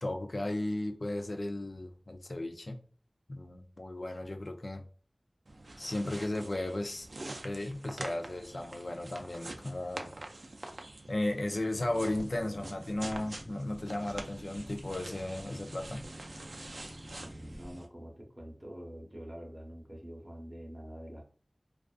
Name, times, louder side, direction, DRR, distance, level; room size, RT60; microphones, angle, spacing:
voice 1, 0.0-2.8 3.3-4.8 5.8-7.1 7.4-10.1 11.1-16.0, left 1 dB, 65° left, 0.4 m, -35 dB
sound 1, 5.5-17.9, right 2 dB, 85° right, 0.3 m, -46 dB
Boat Water vehicle, 11.7-17.8, equal, ahead, 0.5 m, -49 dB
voice 2, 17.2-21.3, equal, 25° right, 0.8 m, -46 dB
2.4 x 2.3 x 2.3 m
wide cardioid pair, 50°, 0 cm